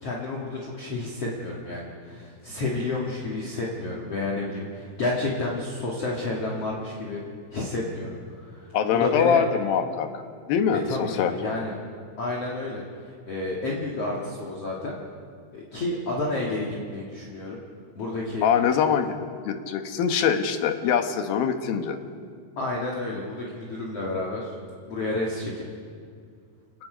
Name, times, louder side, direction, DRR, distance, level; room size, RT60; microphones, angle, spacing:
voice 1, 0.0-7.2 7.5-9.4 10.8-11.7 12.2-15.0 15.5-17.6 18.0-18.5 22.6-24.6 24.9-25.6, left 2 dB, 45° left, -3 dB, 2.7 m, -30 dB
voice 2, 8.7-10.2 10.5-11.3 18.4-19.1 19.5-22.0, left 7 dB, 70° left, 7 dB, 2.9 m, -23 dB
29.5 x 19.0 x 5.2 m, 2.2 s
omnidirectional pair, 4.6 m